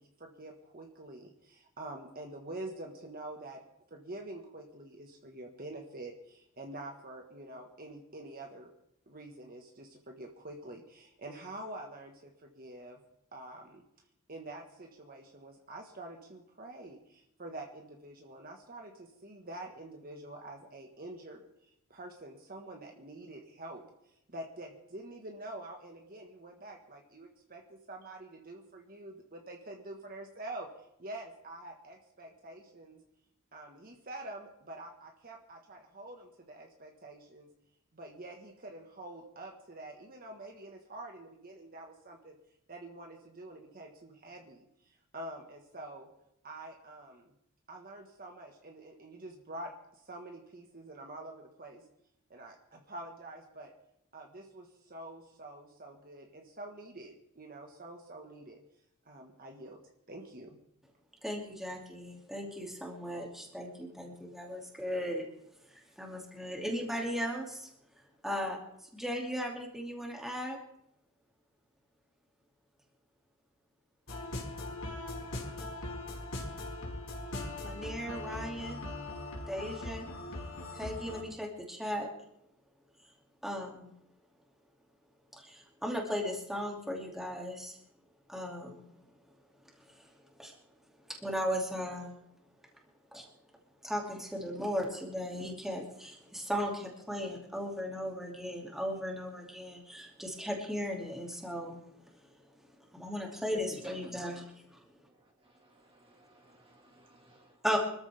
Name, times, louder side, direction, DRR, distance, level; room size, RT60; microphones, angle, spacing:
voice 1, 0.0-3.6 3.9-8.7 9.1-13.0 13.3-13.8 14.3-33.0 33.5-37.5 37.9-42.4 42.7-46.1 46.4-47.3 47.7-51.8 52.3-53.7 54.1-58.6 59.0-59.8 60.1-60.6, right 1 dB, 40° right, 2 dB, 1.6 m, -47 dB
voice 2, 61.2-65.3 65.7-67.7 68.0-70.6 77.6-78.8 79.5-80.0 80.7-82.1 83.4-83.9 85.3-87.8 88.3-88.8 89.8-90.5 91.1-92.1 93.1-93.3 93.8-101.8 102.2-102.3 102.6-104.8 107.6-107.8, equal, ahead, -1 dB, 2.6 m, -37 dB
sound 1, 74.1-81.2, left 2 dB, 70° left, 4.8 m, -40 dB
voice 3, 103.5-104.2 105.0-107.6, equal, 25° right, 0 dB, 2.0 m, -54 dB
25.0 x 13.5 x 3.5 m, 0.78 s
head